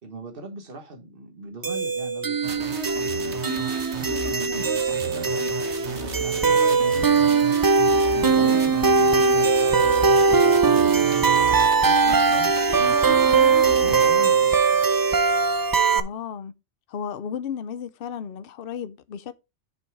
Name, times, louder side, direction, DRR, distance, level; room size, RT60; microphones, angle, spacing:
voice 1, 0.0-3.4 4.0-7.2 8.3-13.3 13.6-14.8, right 2 dB, 55° right, 1.8 m, -40 dB
sound 1, 1.6-16.0, right 4 dB, 35° right, 0.3 m, -20 dB
sound 2, 2.4-14.1, right 3 dB, 80° right, 1.8 m, -34 dB
voice 2, 15.9-16.5 16.9-19.3, left 7 dB, 60° left, 0.8 m, -34 dB
7.0 x 5.5 x 4.8 m
omnidirectional pair, 1.2 m